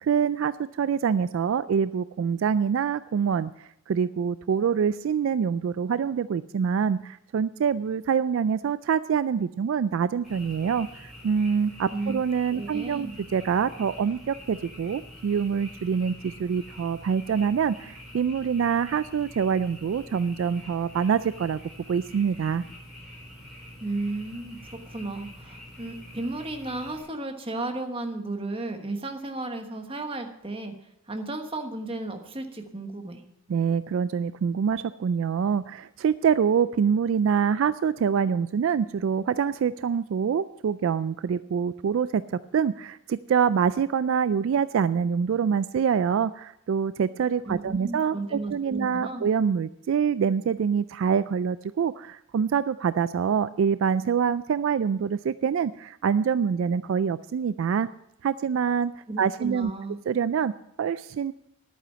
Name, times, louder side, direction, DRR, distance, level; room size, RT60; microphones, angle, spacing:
voice 1, 0.0-21.6 21.9-22.6 33.5-57.9 58.2-58.9 59.2-59.7 60.1-60.5 60.8-61.3, right 7 dB, 65° right, 15 dB, 0.3 m, -25 dB
Frog, 10.2-27.0, left 1 dB, ahead, 5.6 m, -46 dB
voice 2, 12.5-13.1 23.8-30.7 31.1-33.2 47.5-49.3 59.1-60.0, right 2 dB, 25° right, 5 dB, 1.3 m, -34 dB
11.0 x 9.2 x 5.6 m, 0.82 s
head